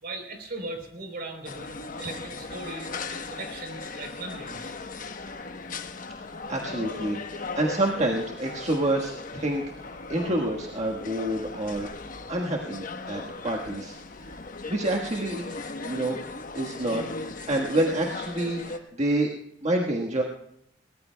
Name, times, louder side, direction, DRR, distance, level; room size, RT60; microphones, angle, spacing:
voice 1, 0.0-4.7, right 2 dB, 60° right, 4 dB, 3.7 m, -39 dB
sound 1, 1.4-18.8, left 3 dB, 50° left, 1.1 m, -38 dB
voice 2, 6.5-11.9 12.3-13.9 14.7-15.4 15.8-16.2 16.5-19.3 19.6-20.2, right 1 dB, 40° right, 0 dB, 1.5 m, -28 dB
22.0 x 19.0 x 2.3 m, 0.75 s
head